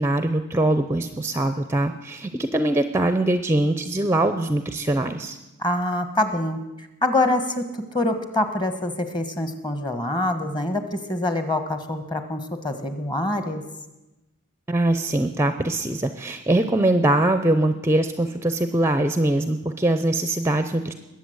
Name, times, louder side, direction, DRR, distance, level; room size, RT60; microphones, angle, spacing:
voice 1, 0.0-5.4 14.7-20.9, right 1 dB, 10° right, 10 dB, 0.6 m, -22 dB
voice 2, 5.6-13.6, left 1 dB, 20° left, 8 dB, 1.3 m, -25 dB
21.0 x 8.1 x 8.0 m, 1.0 s
head